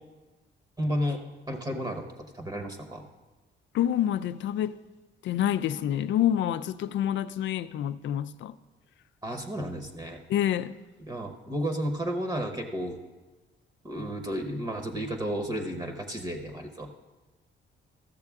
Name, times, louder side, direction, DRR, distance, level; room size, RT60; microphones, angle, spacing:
voice 1, 0.8-2.1 2.3-3.1 9.2-10.2 11.0-13.0 13.8-17.0, equal, 20° right, 0.9 m, -32 dB
voice 2, 3.7-4.8 5.2-8.5 10.3-10.7, left 11 dB, 70° left, 0.4 m, -27 dB
13.5 x 6.6 x 3.6 m
cardioid pair, 90°, 20 cm